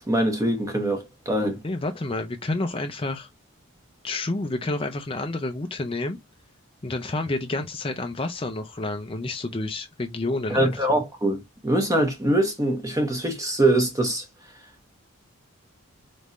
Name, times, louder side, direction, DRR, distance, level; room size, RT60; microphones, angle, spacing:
voice 1, 0.1-1.6 10.5-14.2, right 1 dB, 15° right, 0.9 m, -23 dB
voice 2, 1.6-3.3 4.0-6.2 6.8-11.0, left 2 dB, 25° left, 0.5 m, -29 dB
4.2 x 3.5 x 2.4 m
head